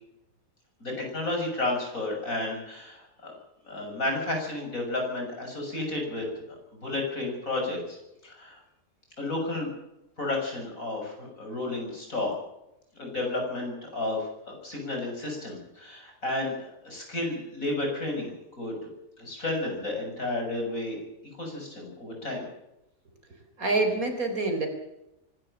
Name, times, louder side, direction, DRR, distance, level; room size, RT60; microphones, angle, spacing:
voice 1, 0.8-3.3 3.6-6.3 6.7-8.0 8.2-8.6 9.2-9.7 10.2-12.3 12.9-14.3 14.6-16.6 16.8-18.7 19.2-21.0 21.4-22.5, left 2 dB, 70° left, 1 dB, 7.5 m, -32 dB
voice 2, 23.6-24.7, right 2 dB, 80° right, 5 dB, 4.5 m, -26 dB
24.5 x 12.5 x 9.0 m, 0.89 s
omnidirectional pair, 1.5 m